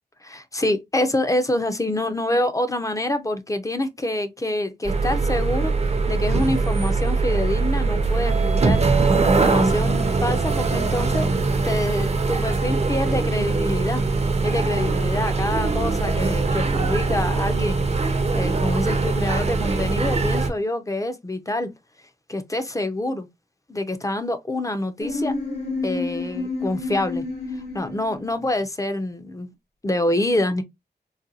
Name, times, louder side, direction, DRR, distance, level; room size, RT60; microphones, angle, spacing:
voice 1, 0.2-5.7 6.1-11.3 11.6-14.0 14.4-21.7 22.3-23.3 23.7-25.3 25.8-27.2 27.7-29.5 29.8-30.6, left 1 dB, 20° left, 0.5 m, -26 dB
sound 1, 4.8-20.5, right 3 dB, 40° right, 0.6 m, -22 dB
sound 2, 25.0-28.4, left 3 dB, 70° left, 1.6 m, -29 dB
4.0 x 2.2 x 2.5 m
wide cardioid pair, 80°, 17 cm